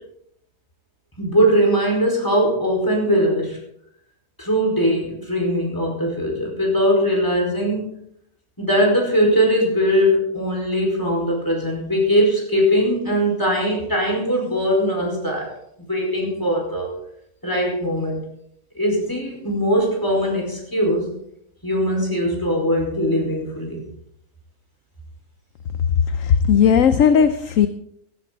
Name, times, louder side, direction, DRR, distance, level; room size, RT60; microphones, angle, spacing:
voice 1, 1.2-3.6 4.4-7.9 8.6-15.5 15.9-16.9 17.4-18.2 18.7-21.1 21.6-23.9, equal, 15° left, -1 dB, 5.0 m, -20 dB
voice 2, 26.2-27.7, left 7 dB, 65° left, 11 dB, 1.0 m, -16 dB
18.5 x 11.5 x 4.1 m, 0.74 s
omnidirectional pair, 1.6 m